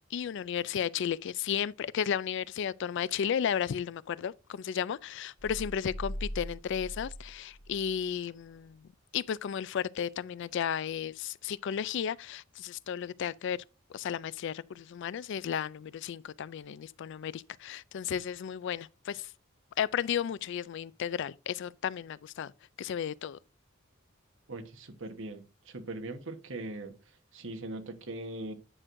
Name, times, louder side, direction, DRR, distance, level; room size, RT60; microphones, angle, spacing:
voice 1, 0.1-8.8 9.1-13.6 13.9-19.3 19.8-22.5 22.8-23.4, left 8 dB, 60° left, 0.3 m, -34 dB
sound 1, 5.4-8.1, equal, 85° left, 0.9 m, -41 dB
voice 2, 24.5-28.5, right 2 dB, 65° right, 1.2 m, -41 dB
9.8 x 6.2 x 2.6 m
head